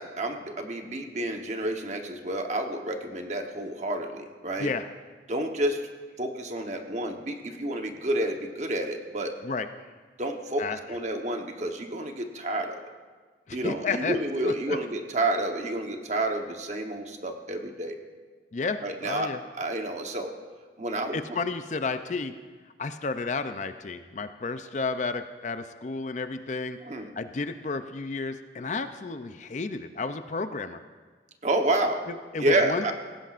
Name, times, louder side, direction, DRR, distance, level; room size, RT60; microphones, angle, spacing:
voice 1, 0.0-4.7 5.3-5.9 6.2-9.3 10.2-12.8 13.5-18.0 18.8-19.3 19.6-20.3 20.8-21.2 26.8-27.1 31.4-32.0 32.4-32.9, right 1 dB, 40° right, 4 dB, 1.0 m, -29 dB
voice 2, 13.5-14.2 14.4-14.8 18.5-19.4 21.1-22.3 22.8-26.8 27.2-30.8 32.1-32.9, left 4 dB, 40° left, 10 dB, 0.4 m, -32 dB
18.0 x 16.0 x 2.5 m, 1.4 s
head